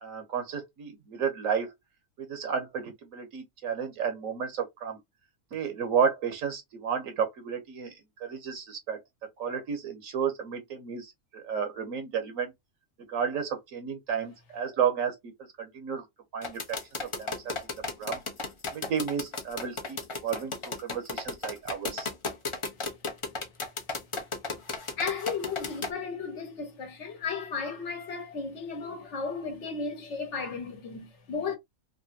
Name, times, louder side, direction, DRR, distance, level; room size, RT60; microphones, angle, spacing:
voice 1, 0.0-1.7 2.2-5.0 5.5-7.9 8.2-9.0 9.4-12.5 13.1-15.2 15.6-16.0 16.3-17.5 18.0-18.2 18.7-22.1, right 7 dB, 75° right, 1.2 m, -32 dB
sound 1, 16.4-25.9, left 3 dB, 35° left, 0.5 m, -34 dB
voice 2, 25.0-31.6, left 5 dB, 60° left, 1.3 m, -34 dB
3.2 x 2.6 x 2.6 m
omnidirectional pair, 1.4 m